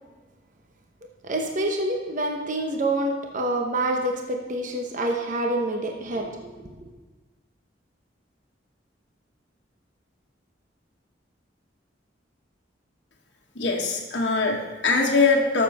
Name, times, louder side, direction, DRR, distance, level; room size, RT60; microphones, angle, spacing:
voice 1, 1.2-6.9, right 1 dB, 45° right, 2 dB, 1.0 m, -27 dB
voice 2, 13.6-15.6, left 3 dB, 75° left, -1 dB, 1.2 m, -22 dB
13.5 x 6.8 x 4.2 m, 1.3 s
head